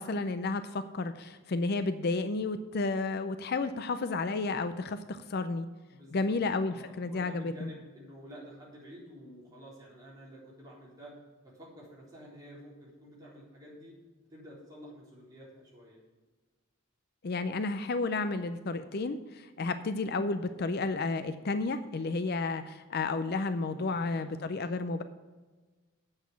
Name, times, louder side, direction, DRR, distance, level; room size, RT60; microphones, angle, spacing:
voice 1, 0.0-5.7 6.1-7.7 17.2-25.0, left 3 dB, 50° left, 11 dB, 0.5 m, -32 dB
voice 2, 5.9-11.1 11.4-14.0 14.3-16.0 23.7-24.3, equal, 20° right, -6 dB, 3.9 m, -50 dB
8.1 x 6.5 x 8.2 m, 1.3 s
head